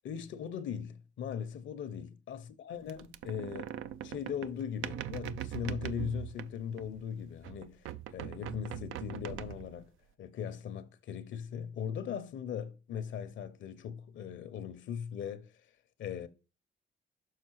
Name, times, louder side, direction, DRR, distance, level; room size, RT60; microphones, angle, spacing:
voice 1, 0.0-3.7 4.0-9.9 10.2-15.5 16.0-16.3, left 8 dB, 70° left, 0.8 m, -39 dB
sound 1, 2.9-7.1 7.4-9.9, right 12 dB, 85° right, 0.5 m, -41 dB
6.6 x 4.4 x 4.6 m
cardioid pair, 90°, 20 cm